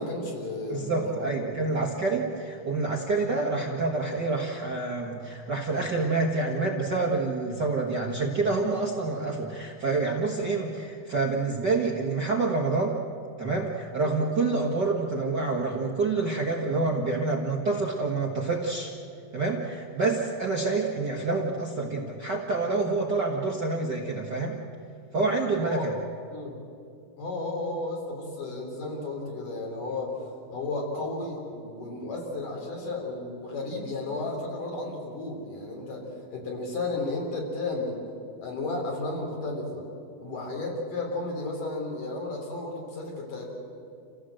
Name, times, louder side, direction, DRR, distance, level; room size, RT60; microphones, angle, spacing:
voice 1, 0.0-1.7 14.4-14.7 25.6-25.9 26.3-26.6 27.2-30.2 30.5-38.0 38.4-39.8 40.2-43.5, left 2 dB, 70° left, 0 dB, 5.3 m, -33 dB
voice 2, 0.7-13.0 13.4-18.9 19.3-24.6 25.1-25.9, right 3 dB, 45° right, -1 dB, 1.5 m, -27 dB
28.5 x 16.0 x 7.7 m, 2.6 s
omnidirectional pair, 3.9 m